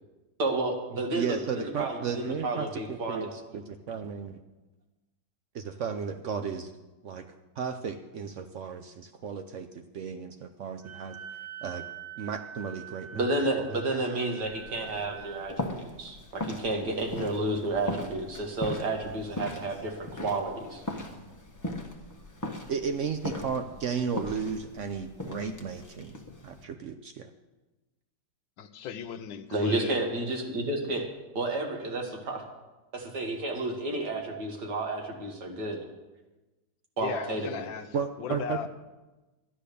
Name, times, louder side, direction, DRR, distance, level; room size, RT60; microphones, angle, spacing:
voice 1, 0.4-3.3 13.1-20.8 29.5-31.1 31.4-32.4 32.9-35.8 37.0-37.7, right 2 dB, 60° right, 2 dB, 2.2 m, -31 dB
voice 2, 1.1-4.4 5.5-6.7 7.0-7.3 7.6-11.2 11.6-11.8 12.2-13.2 22.7-26.1 26.4-27.3 37.9-38.7, right 6 dB, 90° right, 7 dB, 0.6 m, -34 dB
Wind instrument woodwind instrument, 10.8-15.5, right 9 dB, 35° right, 0.7 m, -45 dB
sound 1, 14.4-26.6, left 1 dB, 10° left, 0.9 m, -39 dB
voice 3, 28.6-30.0 37.0-38.7, left 8 dB, 75° left, 9 dB, 1.5 m, -37 dB
12.5 x 10.0 x 6.8 m, 1.1 s
omnidirectional pair, 2.1 m